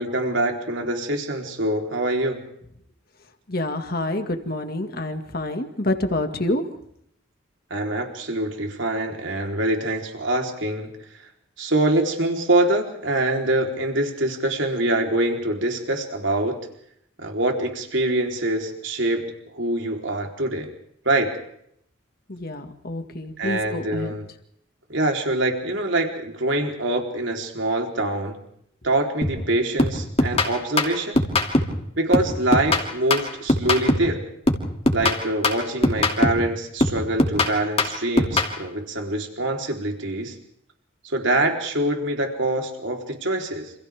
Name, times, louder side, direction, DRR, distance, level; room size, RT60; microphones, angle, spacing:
voice 1, 0.0-2.4 7.7-10.9 11.6-16.6 17.2-20.7 21.1-21.3 23.4-24.3 24.9-28.4 28.8-31.2 32.0-34.2 34.9-40.4 41.0-43.7, right 1 dB, 70° right, 2 dB, 3.8 m, -24 dB
voice 2, 3.5-6.8 22.3-24.2, left 1 dB, 50° left, 6 dB, 2.0 m, -27 dB
sound 1, 29.2-29.5 29.8-31.8 32.1-34.2 34.5-36.5 36.8-38.6, left 2 dB, 30° left, 2.7 m, -22 dB
28.5 x 27.5 x 3.6 m, 0.71 s
head